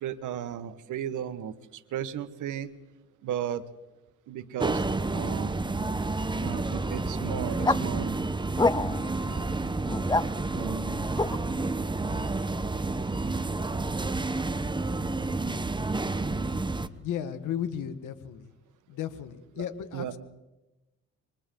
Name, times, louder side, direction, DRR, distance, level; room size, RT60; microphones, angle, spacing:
voice 1, 0.0-1.5 1.9-2.7 3.2-3.6 4.3-4.8 5.1-5.5 6.4-8.2 9.2-9.5 10.5-11.1 12.1-12.6 19.9-20.1, right 10 dB, 80° right, 11 dB, 1.4 m, -35 dB
sound 1, 4.6-16.9, right 3 dB, 15° right, 1.0 m, -30 dB
sound 2, 7.6-7.8 8.6-9.1 9.8-10.3 11.2-11.4, left 3 dB, 15° left, 0.7 m, -26 dB
voice 2, 17.0-18.5 18.9-20.2, left 9 dB, 80° left, 11 dB, 1.7 m, -34 dB
28.5 x 23.5 x 3.9 m, 1.0 s
cardioid pair, 90°, 30 cm